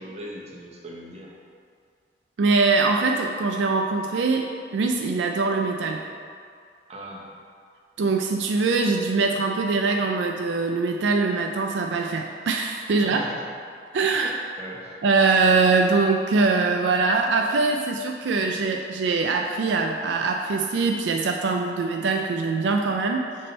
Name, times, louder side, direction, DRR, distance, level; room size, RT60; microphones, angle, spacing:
voice 1, 0.0-1.3 6.9-7.3 12.9-13.4 14.0-14.9, equal, 35° right, -2 dB, 0.9 m, -39 dB
voice 2, 2.4-6.0 8.0-13.2 13.9-14.3 15.0-23.3, right 4 dB, 80° right, 2 dB, 0.4 m, -23 dB
6.6 x 3.6 x 4.3 m, 2.2 s
head